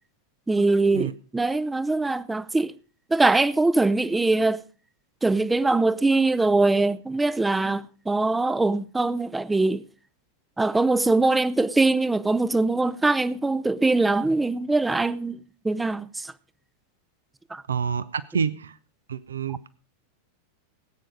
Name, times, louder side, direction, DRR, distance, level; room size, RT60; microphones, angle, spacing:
voice 1, 0.5-2.7 3.1-4.6 5.2-9.8 10.6-16.3 17.5-17.6, right 3 dB, 10° right, 0.6 m, -22 dB
voice 2, 17.7-18.7 19.1-19.7, right 6 dB, 70° right, 0.7 m, -28 dB
18.5 x 9.0 x 5.1 m
figure-of-eight pair, 90°, 0 cm